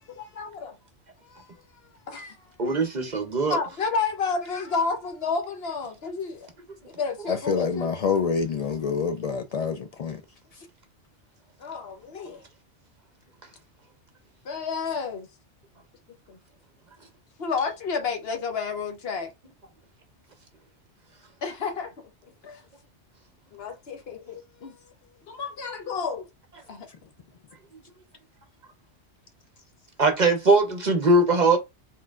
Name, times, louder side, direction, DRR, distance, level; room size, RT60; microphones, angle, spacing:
voice 1, 0.1-0.7 1.3-1.5 2.1-2.3 3.5-6.5 7.0-7.9 11.6-12.4 14.4-15.3 16.3-16.4 17.4-19.3 21.4-21.9 22.4-22.6 23.5-24.8 25.3-26.3 26.7-26.9, left 5 dB, 60° left, 1.1 m, -30 dB
voice 2, 2.6-3.6 30.0-31.6, right 2 dB, 45° right, 0.7 m, -20 dB
voice 3, 7.3-10.2, left 6 dB, 75° left, 0.3 m, -27 dB
4.2 x 3.8 x 2.4 m
omnidirectional pair, 1.2 m